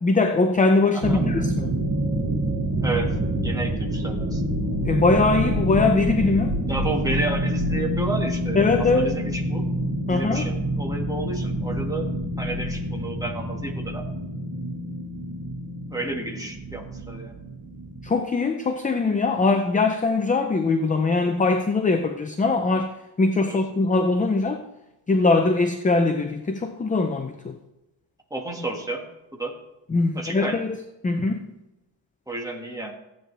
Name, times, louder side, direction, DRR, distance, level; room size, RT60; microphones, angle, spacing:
voice 1, 0.0-1.7 4.8-6.6 8.6-9.1 10.1-10.5 18.0-22.9 23.2-24.6 25.1-27.6 29.9-30.7 31.0-31.4, left 3 dB, 15° left, 6 dB, 0.6 m, -21 dB
voice 2, 0.9-1.3 2.8-3.2 3.4-4.4 6.7-9.7 10.1-12.1 12.4-14.1 15.9-17.3 23.5-23.6 28.3-29.0 29.3-29.5 30.1-30.6 32.3-32.9, right 2 dB, 10° right, 0 dB, 1.7 m, -31 dB
sound 1, 1.0-18.1, right 1 dB, 40° right, 2.3 m, -27 dB
15.0 x 9.1 x 3.3 m, 0.94 s
cardioid pair, 155°, 46 cm